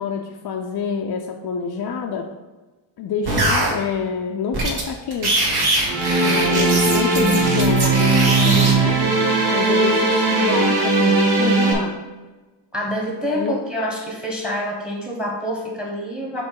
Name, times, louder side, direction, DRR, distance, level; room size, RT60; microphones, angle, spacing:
voice 1, 0.0-2.3 3.0-5.5 6.2-12.0 13.3-13.6, left 6 dB, 50° left, 2 dB, 0.5 m, -27 dB
sound 1, 3.3-3.7 4.5-4.8 5.1-8.7, right 2 dB, 50° right, 1.4 m, -22 dB
sound 2, 5.9-11.7, right 3 dB, 75° right, 1.6 m, -18 dB
voice 2, 6.9-7.7 12.7-16.5, left 1 dB, ahead, -1 dB, 1.1 m, -27 dB
6.6 x 3.1 x 4.6 m, 1.2 s
wide cardioid pair, 150°, 50 cm